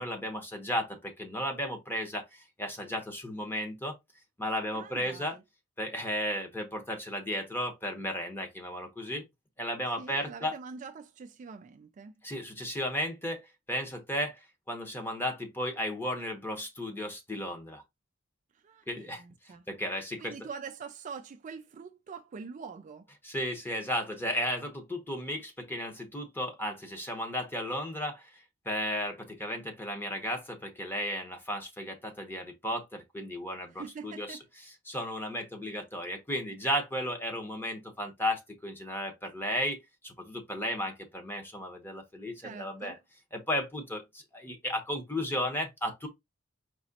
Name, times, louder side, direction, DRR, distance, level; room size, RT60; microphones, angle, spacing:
voice 1, 0.0-3.9 4.4-5.4 5.8-9.2 9.6-10.5 12.2-17.8 18.9-19.2 19.7-20.4 23.2-28.3 28.6-34.4 34.9-39.8 40.0-43.0 43.3-46.1, left 1 dB, 10° left, 1.0 m, -34 dB
voice 2, 4.7-5.4 10.0-12.1 18.5-19.7 20.2-23.1 33.7-34.4 42.4-43.0, right 5 dB, 35° right, 0.3 m, -44 dB
4.9 x 3.0 x 2.8 m
head